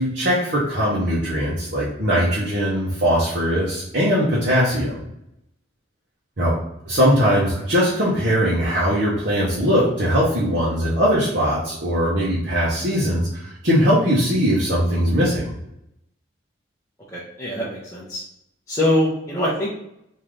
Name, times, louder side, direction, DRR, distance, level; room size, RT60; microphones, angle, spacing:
voice 1, 0.0-5.0 6.4-6.5 6.9-15.5, equal, 55° right, -7 dB, 1.0 m, -20 dB
voice 2, 17.1-18.2 18.7-19.7, left 1 dB, 15° left, -9 dB, 0.7 m, -23 dB
3.7 x 2.8 x 3.2 m, 0.80 s
head